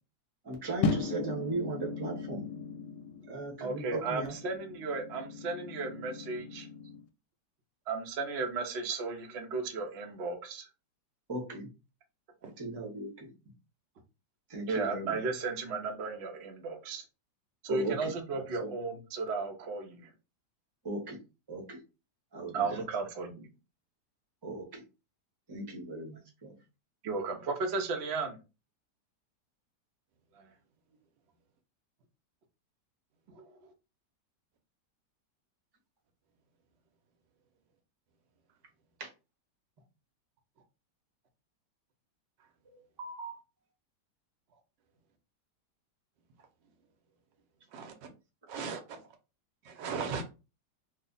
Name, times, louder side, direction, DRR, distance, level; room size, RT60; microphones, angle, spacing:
voice 1, 0.4-2.5 3.3-4.4 11.3-11.7 12.4-13.3 14.5-15.2 17.7-18.7 20.8-21.2 21.5-21.8 22.3-22.8 24.4-24.8 25.5-26.5 39.0-39.1 43.0-43.4, right 2 dB, 20° right, 0.6 m, -38 dB
sound 1, 0.8-7.0, left 4 dB, 75° left, 1.2 m, -37 dB
voice 2, 3.6-6.7 7.9-10.7 14.7-17.0 17.6-20.1 22.5-23.5 27.0-28.4 30.4-30.5 33.3-33.4, right 4 dB, 60° right, 0.7 m, -35 dB
voice 3, 48.5-49.0 49.6-50.2, right 5 dB, 85° right, 1.4 m, -37 dB
3.2 x 2.1 x 3.8 m
omnidirectional pair, 1.9 m